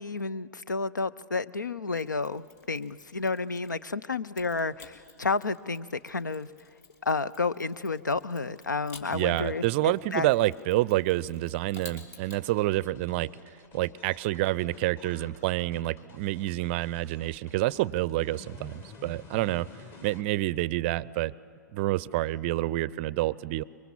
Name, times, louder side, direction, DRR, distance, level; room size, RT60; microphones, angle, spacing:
voice 1, 0.0-6.5 7.0-10.3, left 4 dB, 80° left, 17 dB, 0.6 m, -31 dB
Mechanisms, 1.9-3.9 4.4-12.4, left 4 dB, 50° left, 3.5 m, -53 dB
voice 2, 9.1-13.3 13.7-19.7 20.0-21.3 21.7-23.6, right 17 dB, 35° right, 21 dB, 0.5 m, -28 dB
sound 1, 12.2-20.2, left 4 dB, 25° left, 1.6 m, -51 dB
25.5 x 23.0 x 7.2 m, 2.4 s
figure-of-eight pair, 110°, 10 cm